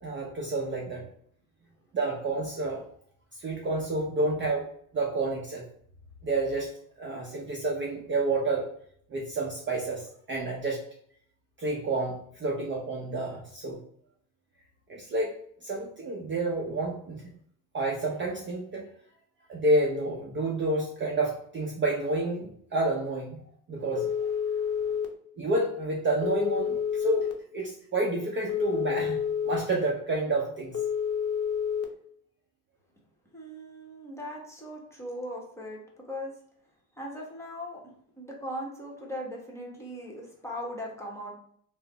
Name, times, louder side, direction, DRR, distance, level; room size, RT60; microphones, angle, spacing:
voice 1, 0.0-1.0 1.9-2.8 3.4-4.7 4.9-5.6 6.2-6.7 7.0-8.7 9.1-10.8 11.6-13.8 14.9-17.2 17.7-18.8 19.5-23.4 23.7-24.1 25.4-27.3 27.5-30.7, right 2 dB, 25° right, -2 dB, 0.5 m, -29 dB
Telephone, 24.0-25.1 26.2-27.3 28.5-29.6 30.7-31.8, left 8 dB, 35° left, 0.6 m, -29 dB
voice 2, 24.4-25.0 33.3-36.4 37.0-37.8 38.2-41.4, equal, 5° left, -2 dB, 0.9 m, -39 dB
3.2 x 2.0 x 3.8 m, 0.63 s
supercardioid pair, 105°, 43 cm